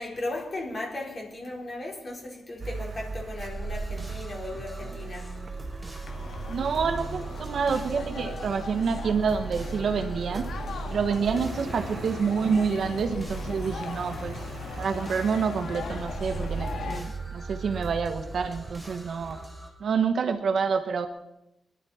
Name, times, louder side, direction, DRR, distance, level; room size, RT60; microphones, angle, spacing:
voice 1, 0.0-5.4, left 2 dB, 35° left, 4.5 m, -36 dB
Car, 2.6-19.5, right 4 dB, 40° right, 0.8 m, -38 dB
sound 1, 3.4-19.7, right 1 dB, ahead, 3.2 m, -44 dB
sound 2, 6.0-17.0, left 4 dB, 75° left, 1.8 m, -39 dB
voice 2, 6.5-10.5 10.8-14.4 14.8-19.4 19.8-21.1, right 6 dB, 60° right, 1.3 m, -28 dB
23.5 x 12.0 x 4.4 m
wide cardioid pair, 150°, 0 cm